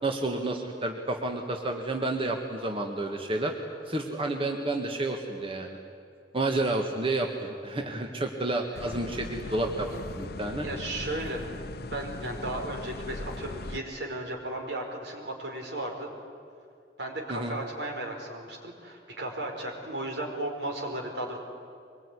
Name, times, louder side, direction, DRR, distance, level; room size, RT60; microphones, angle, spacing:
voice 1, 0.0-3.5 3.9-5.8 6.3-9.9 10.2-10.7 17.3-17.6, right 2 dB, 30° right, 3 dB, 1.7 m, -30 dB
sound 1, 8.8-13.8, left 2 dB, 60° left, 0.9 m, -39 dB
voice 2, 10.6-11.5 11.9-16.1 17.0-21.4, right 1 dB, 75° right, 2 dB, 4.9 m, -35 dB
24.0 x 22.0 x 9.9 m, 2.4 s
head